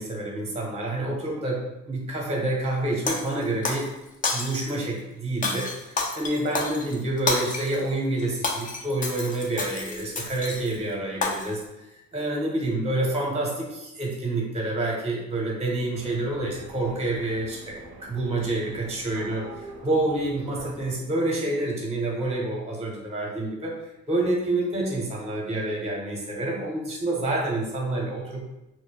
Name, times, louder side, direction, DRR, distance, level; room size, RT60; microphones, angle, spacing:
voice 1, 0.0-1.6 1.9-3.9 4.3-11.6 11.9-17.8 18.0-19.5 19.8-23.8 24.1-28.5, right 2 dB, 20° right, -2 dB, 0.7 m, -28 dB
Shatter, 3.1-3.9 4.2-4.8 5.4-7.8 8.2-10.8 11.2-11.6, left 3 dB, 25° left, 0.4 m, -29 dB
sound 1, 15.9-21.0, right 4 dB, 55° right, 0.5 m, -45 dB
2.1 x 2.0 x 3.5 m, 0.97 s
cardioid pair, 90°, 30 cm